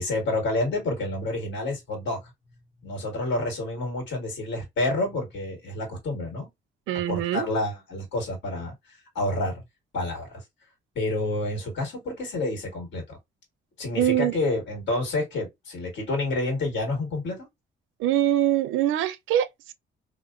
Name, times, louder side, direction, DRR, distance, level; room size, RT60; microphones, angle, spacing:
voice 1, 0.0-2.2 2.8-6.5 7.1-9.6 9.9-10.4 11.0-13.2 13.8-17.5, left 2 dB, 65° left, 1.7 m, -29 dB
voice 2, 6.9-7.5 13.9-14.4 18.0-19.7, right 12 dB, 85° right, 0.4 m, -24 dB
2.8 x 2.1 x 2.4 m
cardioid pair, 90°, 20 cm